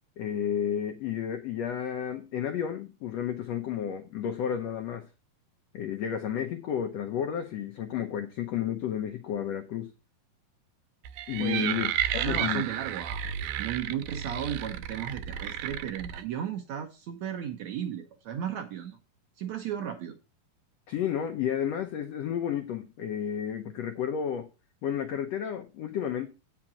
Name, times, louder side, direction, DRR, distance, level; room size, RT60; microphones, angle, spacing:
voice 1, 0.2-5.1 5.7-9.9 11.3-12.6 20.9-24.5 24.8-26.3, left 9 dB, 90° left, 1.4 m, -32 dB
sound 1, 11.1-16.2, right 10 dB, 90° right, 2.4 m, -32 dB
voice 2, 11.4-11.7 12.2-13.2 13.6-19.0 19.4-20.1, right 9 dB, 70° right, 1.7 m, -34 dB
8.8 x 5.8 x 6.0 m
omnidirectional pair, 4.1 m